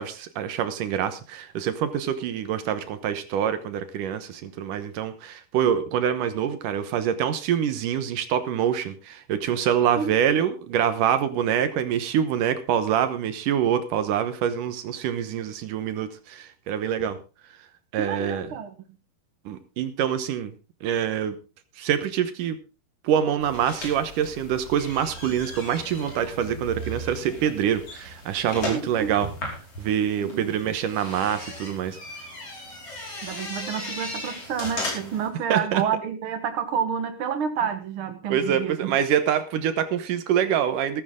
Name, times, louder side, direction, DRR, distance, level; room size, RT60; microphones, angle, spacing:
voice 1, 0.0-17.2 17.9-18.5 19.5-20.5 20.8-21.3 21.8-22.6 23.0-29.3 29.8-32.0 35.5-35.8 38.3-41.0, right 9 dB, 65° right, 2.3 m, -25 dB
voice 2, 18.0-18.7 28.6-29.2 30.2-30.5 33.2-39.0, right 7 dB, 90° right, 1.1 m, -29 dB
sound 1, 23.4-35.3, left 1 dB, 40° left, 5.5 m, -37 dB
14.0 x 14.0 x 3.7 m
omnidirectional pair, 4.5 m